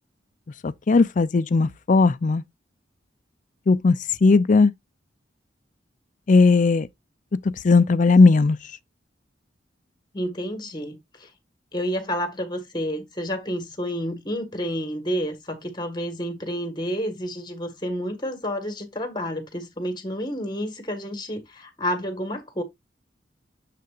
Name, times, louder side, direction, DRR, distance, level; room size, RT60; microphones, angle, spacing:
voice 1, 0.6-2.4 3.7-4.0 4.2-4.7 6.3-6.9 7.6-8.6, left 3 dB, 45° left, 0.4 m, -17 dB
voice 2, 10.1-11.3 11.7-22.6, equal, 25° left, 1.5 m, -30 dB
6.7 x 6.6 x 2.4 m
head